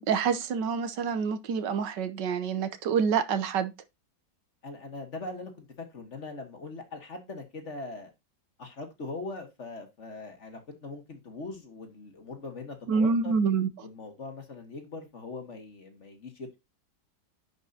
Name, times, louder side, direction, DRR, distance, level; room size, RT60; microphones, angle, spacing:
voice 1, 0.0-3.7 12.9-13.7, right 6 dB, 75° right, 1.5 m, -27 dB
voice 2, 4.6-8.1 8.6-13.4 13.8-16.6, left 3 dB, 40° left, 1.8 m, -41 dB
10.0 x 5.5 x 2.8 m
omnidirectional pair, 1.9 m